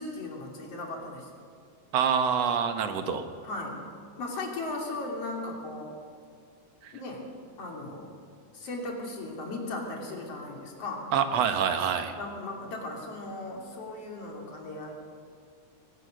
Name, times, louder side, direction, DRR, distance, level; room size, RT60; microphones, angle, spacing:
voice 1, 0.0-1.3 3.4-3.8 4.2-6.0 6.9-7.3 7.6-8.2 8.5-11.1 12.2-14.9, left 2 dB, 50° left, 0 dB, 3.9 m, -37 dB
voice 2, 1.9-3.3 6.8-6.9 11.1-12.1, right 7 dB, 60° right, 7 dB, 2.2 m, -26 dB
21.5 x 18.5 x 6.6 m, 2.3 s
omnidirectional pair, 3.5 m